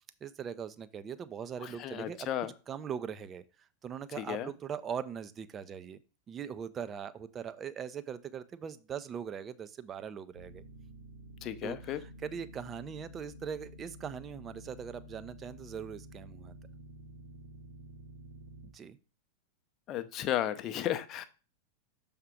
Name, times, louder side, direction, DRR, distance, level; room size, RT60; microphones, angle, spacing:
voice 1, 0.2-2.3 2.7-6.0 6.3-10.6 11.6-16.6 18.6-19.0, right 7 dB, 25° right, 13 dB, 0.5 m, -41 dB
voice 2, 1.6-2.5 4.2-4.5 11.4-12.0 19.9-21.2, left 11 dB, 35° left, 10 dB, 0.6 m, -34 dB
sound 1, 10.3-18.7, equal, 75° right, 1.1 m, -50 dB
6.6 x 3.6 x 5.7 m, 0.34 s
figure-of-eight pair, 90°, 0 cm